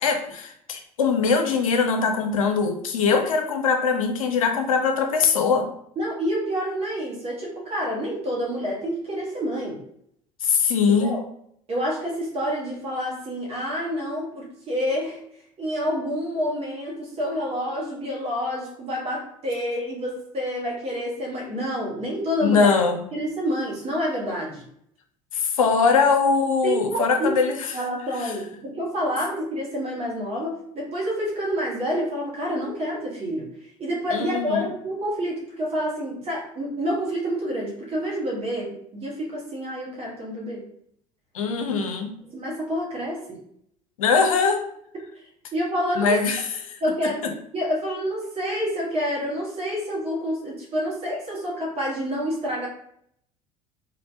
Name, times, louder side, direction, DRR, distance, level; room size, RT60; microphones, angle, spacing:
voice 1, 0.0-5.7 10.4-11.2 22.4-23.0 25.3-27.7 28.2-28.3 34.1-34.7 41.3-42.2 44.0-44.6 46.0-46.8 47.2-47.3, left 5 dB, 80° left, 5 dB, 0.5 m, -22 dB
voice 2, 6.0-9.8 11.0-11.2 11.7-15.2 15.6-22.7 23.1-24.6 26.6-27.4 27.7-33.5 33.8-40.7 42.3-43.4 45.5-46.2 46.8-47.2 47.5-52.7, equal, 35° right, -4 dB, 1.1 m, -28 dB
3.2 x 2.4 x 2.6 m, 0.69 s
figure-of-eight pair, 65°, 17 cm